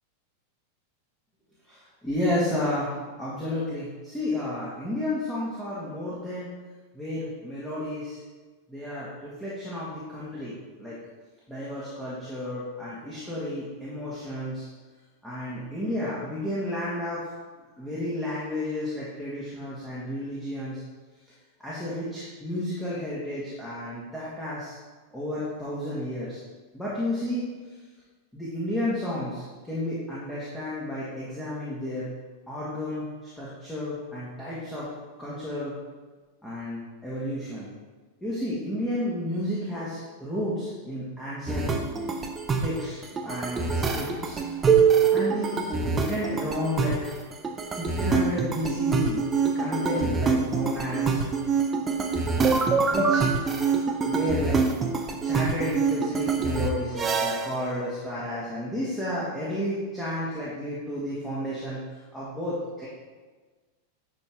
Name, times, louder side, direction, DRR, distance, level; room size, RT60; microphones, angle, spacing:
voice 1, 1.7-6.5 6.9-8.2 8.7-11.0 11.5-14.7 15.2-17.2 17.8-20.8 21.6-24.8 25.1-26.4 26.7-27.4 28.3-32.1 32.5-34.9 35.2-35.7 36.4-37.7 38.2-41.8 42.6-43.0 43.2-44.4 45.1-47.0 47.7-49.2 49.5-51.2 52.9-53.3 54.0-54.6 55.2-62.9, left 1 dB, 5° left, -9 dB, 1.9 m, -32 dB
sound 1, 41.5-57.6, right 5 dB, 20° right, 0.8 m, -25 dB
10.5 x 4.3 x 3.6 m, 1.3 s
figure-of-eight pair, 90°, 0 cm